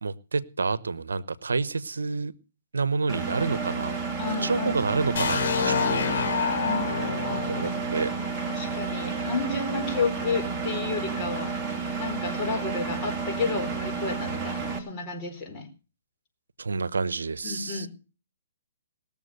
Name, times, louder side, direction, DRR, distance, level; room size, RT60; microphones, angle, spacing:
voice 1, 0.0-2.3 2.7-4.0 4.4-6.5 7.5-8.1 16.6-17.9, right 4 dB, 85° right, 17 dB, 0.9 m, -29 dB
Engine, 3.1-14.8, right 4 dB, 10° right, 2.8 m, -31 dB
voice 2, 4.2-4.7 6.6-7.7 8.5-11.5 12.0-15.7 17.4-17.9, left 4 dB, 25° left, 0 dB, 4.4 m, -31 dB
sound 1, 5.2-9.0, left 6 dB, 55° left, 3.3 m, -28 dB
sound 2, 5.5-15.2, equal, 5° left, 6.6 m, -52 dB
19.5 x 7.1 x 6.7 m, 0.34 s
hypercardioid pair, 140°, 0 cm